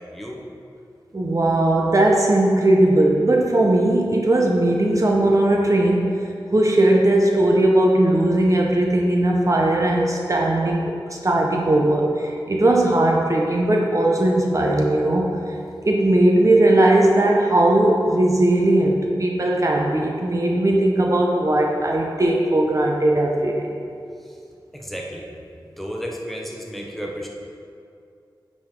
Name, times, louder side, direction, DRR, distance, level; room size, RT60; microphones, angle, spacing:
voice 1, 1.1-15.4 15.8-23.7, right 1 dB, 40° right, -1 dB, 0.8 m, -18 dB
voice 2, 24.7-25.3 25.6-27.3, equal, ahead, -1 dB, 1.1 m, -32 dB
9.5 x 5.0 x 3.7 m, 2.4 s
wide cardioid pair, 55°, 8 cm